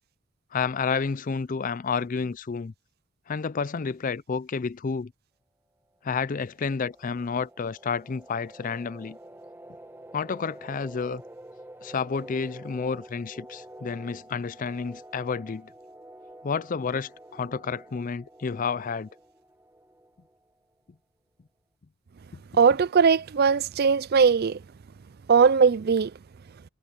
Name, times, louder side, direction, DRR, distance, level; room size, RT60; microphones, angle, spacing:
voice 1, 0.5-2.7 3.3-5.1 6.0-9.2 10.1-11.2 11.8-15.7 16.4-19.1, left 5 dB, 35° left, 0.4 m, -30 dB
sound 1, 6.0-20.6, right 1 dB, 10° right, 1.3 m, -48 dB
voice 2, 22.6-24.6 25.3-26.1, right 6 dB, 45° right, 0.4 m, -20 dB
head